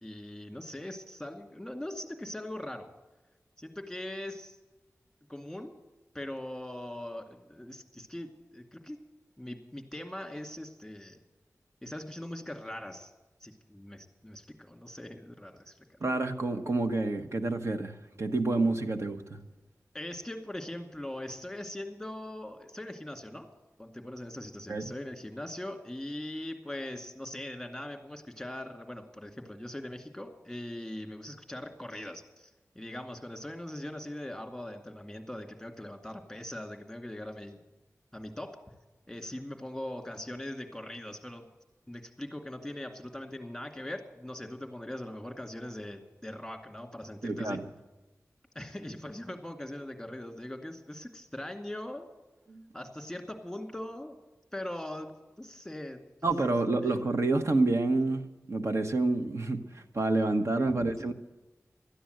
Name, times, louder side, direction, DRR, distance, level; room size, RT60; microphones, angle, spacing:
voice 1, 0.0-2.9 3.6-4.6 5.3-5.7 6.1-9.0 9.4-11.2 11.8-13.1 13.4-16.0 19.9-23.5 23.8-37.6 38.1-38.5 39.1-41.4 41.9-47.6 48.5-52.1 52.7-54.2 54.5-55.1 55.4-57.0 60.7-60.9, left 1 dB, 5° left, 2.2 m, -41 dB
voice 2, 16.0-19.4 24.7-24.8 47.2-47.7 52.5-52.6 56.2-61.1, right 2 dB, 55° right, 1.2 m, -28 dB
13.0 x 10.0 x 7.9 m
wide cardioid pair, 75°, 6 cm